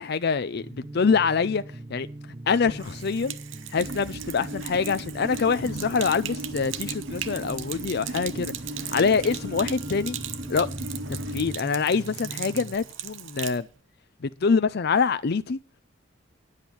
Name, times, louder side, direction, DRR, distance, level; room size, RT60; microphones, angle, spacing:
voice 1, 0.0-2.1 2.5-3.4 3.7-8.5 8.9-10.2 10.5-10.7 11.1-13.7 14.2-15.6, left 5 dB, 55° left, 0.5 m, -25 dB
sound 1, 0.6-12.8, right 1 dB, 25° right, 0.7 m, -42 dB
Sink (filling or washing), 2.7-13.6, right 10 dB, 80° right, 0.9 m, -38 dB
sound 2, 3.8-11.6, equal, 65° right, 2.7 m, -37 dB
10.0 x 8.1 x 7.1 m
head